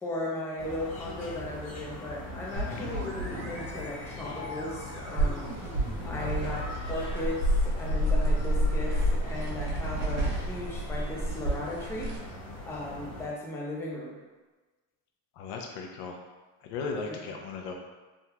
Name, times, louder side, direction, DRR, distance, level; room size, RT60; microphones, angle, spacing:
voice 1, 0.0-5.5 6.0-6.6 6.9-12.1 12.6-14.2 16.9-17.2, left 1 dB, 5° left, -3 dB, 0.4 m, -36 dB
sound 1, 0.6-13.3, left 1 dB, 40° left, 1.0 m, -33 dB
voice 2, 2.5-2.9 6.2-6.5 9.7-10.0 15.4-16.2 16.6-17.7, left 4 dB, 80° left, 1 dB, 0.7 m, -38 dB
sound 2, 2.6-12.1, right 1 dB, 90° right, 1.4 m, -41 dB
sound 3, 5.2-12.2, right 2 dB, 70° right, 1.1 m, -34 dB
3.6 x 2.2 x 2.8 m, 1.3 s
cardioid pair, 120°, 40 cm